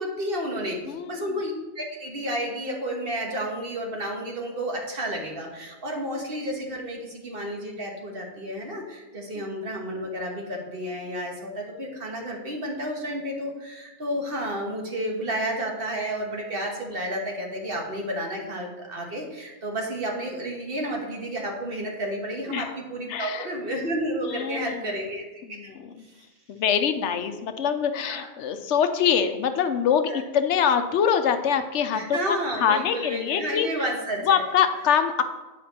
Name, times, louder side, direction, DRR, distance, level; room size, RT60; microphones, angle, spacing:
voice 1, 0.0-0.8 1.1-25.6 26.0-26.2 28.1-28.3 30.1-30.2 31.9-34.4, equal, 55° right, 0 dB, 1.5 m, -31 dB
voice 2, 0.9-1.3 6.2-6.3 9.4-9.5 22.5-22.7 23.1-23.5 24.2-24.9 25.5-25.9 26.5-33.7 34.3-35.2, left 7 dB, 80° left, 9 dB, 1.0 m, -24 dB
9.2 x 5.1 x 4.2 m, 1.2 s
omnidirectional pair, 1.2 m